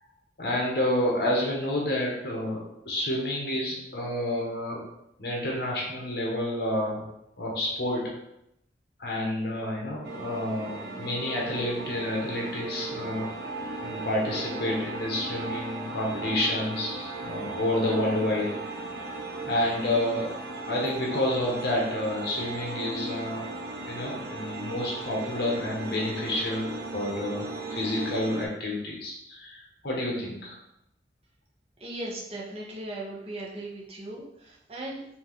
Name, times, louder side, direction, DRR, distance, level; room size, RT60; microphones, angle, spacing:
voice 1, 0.4-4.8 5.2-7.0 7.4-8.1 9.0-13.3 13.8-18.7 19.5-20.3 20.7-23.6 23.9-30.6, left 1 dB, 65° left, -2 dB, 1.3 m, -29 dB
sound 1, 10.0-28.5, right 2 dB, 60° right, 0.6 m, -37 dB
voice 2, 31.8-35.0, right 1 dB, 35° right, -4 dB, 1.0 m, -38 dB
4.4 x 2.8 x 3.6 m, 0.81 s
head